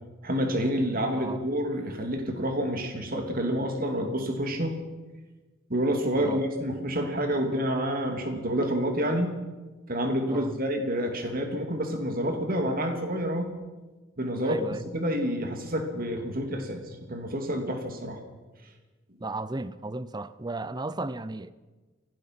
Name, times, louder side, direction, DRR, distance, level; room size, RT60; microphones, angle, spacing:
voice 1, 0.2-4.8 5.7-9.4 9.9-13.5 14.2-14.6 14.9-16.8 17.1-18.2, equal, 50° right, 2.8 m, -28 dB
voice 2, 1.1-1.4 6.2-6.4 10.3-10.6 14.4-14.8 19.2-21.5, right 2 dB, 20° right, 0.7 m, -34 dB
25.5 x 18.0 x 6.0 m
head